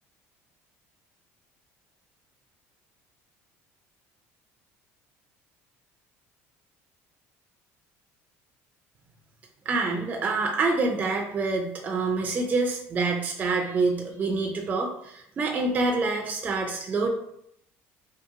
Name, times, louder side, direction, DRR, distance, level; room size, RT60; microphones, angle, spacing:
voice 1, 9.7-17.1, right 3 dB, 30° right, 1 dB, 0.4 m, -26 dB
2.7 x 2.5 x 2.5 m, 0.72 s
cardioid pair, 115°, 6 cm